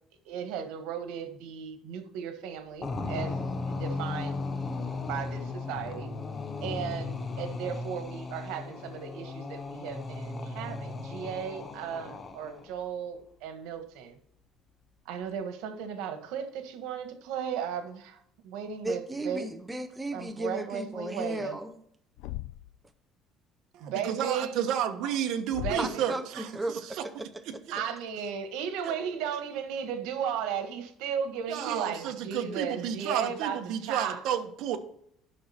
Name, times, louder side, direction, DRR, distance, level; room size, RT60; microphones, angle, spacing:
voice 1, 0.2-3.4 3.7-4.4 5.1-6.1 6.6-14.2 15.0-19.5 20.1-21.6 23.8-24.6 25.6-26.1 27.7-34.2, right 7 dB, 90° right, 8 dB, 1.5 m, -35 dB
sound 1, 2.8-12.7, left 3 dB, 20° left, 0.8 m, -36 dB
voice 2, 18.8-21.8 25.8-27.3, right 2 dB, 10° right, 7 dB, 0.5 m, -35 dB
Thump thud, 22.2-22.8 25.5-26.1, left 16 dB, 75° left, 0.4 m, -38 dB
voice 3, 23.7-26.8 27.5-27.8 28.8-28.9 31.5-34.8, right 9 dB, 55° right, 5 dB, 1.2 m, -32 dB
11.5 x 6.2 x 4.4 m, 0.69 s
cardioid pair, 175°, 0 cm